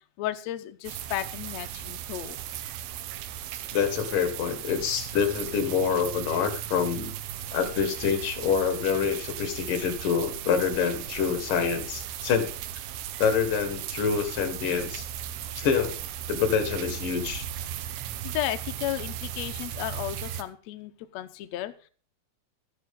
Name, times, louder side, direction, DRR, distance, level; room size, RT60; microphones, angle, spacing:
voice 1, 0.0-2.4 18.2-21.7, left 14 dB, 85° left, 9 dB, 1.5 m, -34 dB
sound 1, 0.9-20.4, right 11 dB, 80° right, 2.7 m, -37 dB
voice 2, 3.7-7.1 7.5-12.5 13.2-15.1 15.6-16.0 16.3-17.5, left 7 dB, 65° left, 8 dB, 3.2 m, -26 dB
13.5 x 10.5 x 3.7 m, 0.38 s
omnidirectional pair, 4.3 m